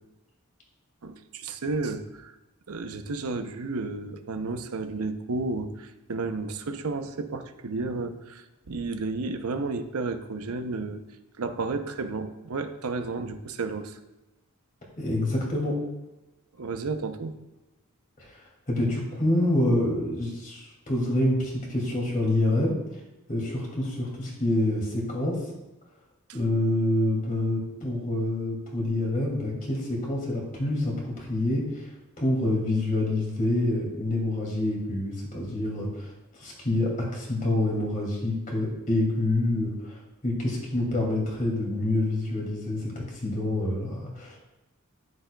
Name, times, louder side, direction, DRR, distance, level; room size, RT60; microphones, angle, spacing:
voice 1, 1.0-2.4 2.7-11.0 11.4-14.0 16.6-17.3 26.3-26.4, right 3 dB, 80° right, 8 dB, 0.7 m, -32 dB
voice 2, 15.0-15.8 18.2-18.4 18.7-22.7 23.3-25.4 26.3-31.9 32.2-36.1 36.4-40.0 40.2-44.4, left 1 dB, 40° left, -2 dB, 2.4 m, -27 dB
10.5 x 7.5 x 2.3 m, 1.0 s
head